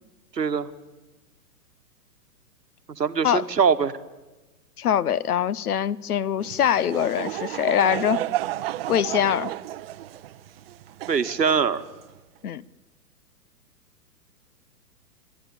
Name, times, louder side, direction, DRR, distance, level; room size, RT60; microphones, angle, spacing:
voice 1, 0.4-0.7 3.0-3.9 11.1-11.8, right 6 dB, 85° right, 1.3 m, -22 dB
voice 2, 4.8-8.3 8.9-9.5 12.4-12.6, left 9 dB, 65° left, 0.9 m, -23 dB
Laughter / Crowd, 6.4-12.2, right 14 dB, 40° right, 0.7 m, -32 dB
28.5 x 12.0 x 8.5 m
figure-of-eight pair, 115°, 48 cm